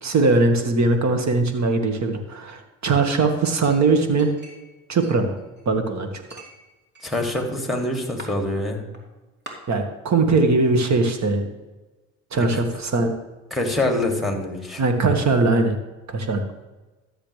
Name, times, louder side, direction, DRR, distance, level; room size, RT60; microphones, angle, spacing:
voice 1, 0.0-4.3 4.9-5.4 5.7-6.4 9.7-11.5 12.3-13.1 14.8-15.8 16.1-16.4, right 3 dB, 50° right, 6 dB, 1.9 m, -20 dB
Chink clink, 3.4-4.7 5.0-5.8 6.3-7.4 7.7-8.3 8.9-9.0 9.5-9.6, right 2 dB, 30° right, 2.9 m, -43 dB
voice 2, 7.0-8.8 13.5-14.8, left 1 dB, ahead, 3 dB, 2.6 m, -25 dB
13.5 x 7.5 x 3.4 m, 1.1 s
supercardioid pair, 65°, 36 cm